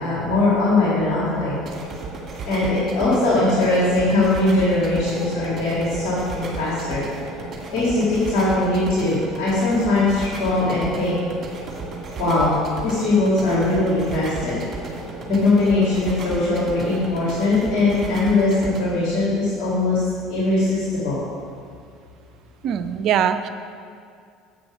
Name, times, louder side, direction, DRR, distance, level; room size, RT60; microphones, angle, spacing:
voice 1, 0.0-1.6 2.5-7.0 7.7-11.2 12.2-14.6 15.3-20.0 20.3-21.2, left 2 dB, 60° left, -8 dB, 2.4 m, -20 dB
sound 1, 1.6-18.8, right 3 dB, 35° right, 2.1 m, -34 dB
voice 2, 22.6-23.5, right 8 dB, 55° right, 10 dB, 0.5 m, -21 dB
8.2 x 6.1 x 6.2 m, 2.3 s
hypercardioid pair, 70°, 0 cm